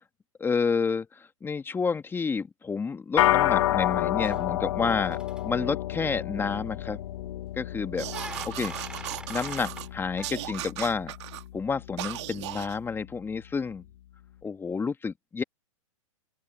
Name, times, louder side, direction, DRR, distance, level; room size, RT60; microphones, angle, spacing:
voice 1, 0.4-7.0 7.6-8.1 8.4-8.7 9.3-11.1 11.5-13.8 14.4-15.4, left 5 dB, 10° left, 2.0 m, -30 dB
sound 1, 3.2-12.7, left 14 dB, 60° left, 1.7 m, -30 dB
sound 2, 4.2-4.8 5.0-5.4 6.8-7.3 8.1-9.9 10.2-10.3, right 2 dB, 5° right, 7.4 m, -43 dB
sound 3, 8.0-9.9 10.2-11.4 12.0-12.8, right 17 dB, 55° right, 2.2 m, -37 dB
open air
hypercardioid pair, 115°, 18 cm